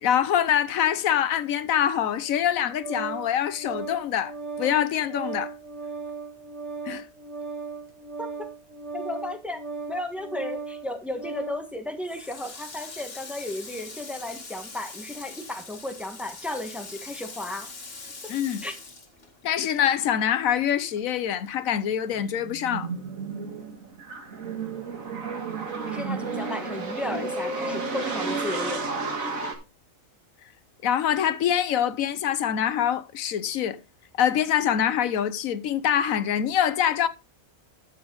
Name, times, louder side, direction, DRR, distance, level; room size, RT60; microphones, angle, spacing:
voice 1, 0.0-5.5 6.9-7.1 18.3-18.6 19.4-22.9 30.8-33.8 34.2-37.1, left 9 dB, 85° left, 1.2 m, -25 dB
Organ, 2.2-11.7, right 4 dB, 55° right, 2.6 m, -37 dB
voice 2, 8.9-9.6 9.9-17.7 18.6-18.8 25.9-28.8, left 1 dB, ahead, 1.3 m, -34 dB
Water tap faucet, 12.0-19.9 20.2-21.5, left 3 dB, 45° left, 1.9 m, -42 dB
sound 1, 22.1-29.5, right 4 dB, 80° right, 2.2 m, -32 dB
12.0 x 7.2 x 3.9 m
omnidirectional pair, 1.4 m